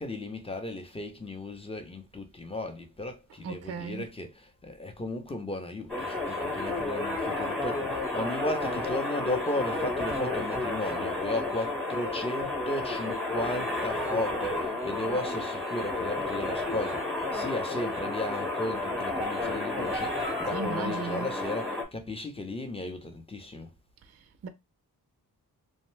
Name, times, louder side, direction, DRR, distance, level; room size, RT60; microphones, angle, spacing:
voice 1, 0.0-23.7, left 1 dB, 15° left, 0.6 m, -35 dB
voice 2, 3.3-4.1 20.5-21.4 24.0-24.5, right 5 dB, 40° right, 0.4 m, -37 dB
sound 1, 5.9-21.8, left 2 dB, ahead, 1.0 m, -31 dB
2.7 x 2.1 x 3.2 m
wide cardioid pair, 85°, 39 cm